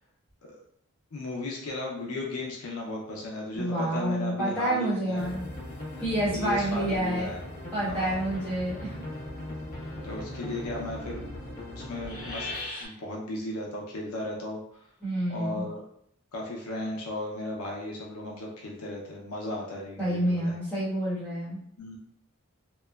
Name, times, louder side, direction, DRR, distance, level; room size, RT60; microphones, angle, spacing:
voice 1, 1.1-5.3 6.3-7.4 7.8-8.2 10.0-11.2 11.8-12.5 12.8-14.6 15.3-15.8 16.3-20.5 21.8-22.0, left 2 dB, 85° left, -1 dB, 0.6 m, -35 dB
voice 2, 3.5-5.4 6.0-7.3 7.7-8.9 15.0-15.7 20.0-21.6, right 1 dB, 5° left, -11 dB, 1.1 m, -28 dB
sound 1, 5.2-12.9, left 1 dB, 40° left, 0.8 m, -38 dB
2.9 x 2.1 x 2.2 m, 0.69 s
head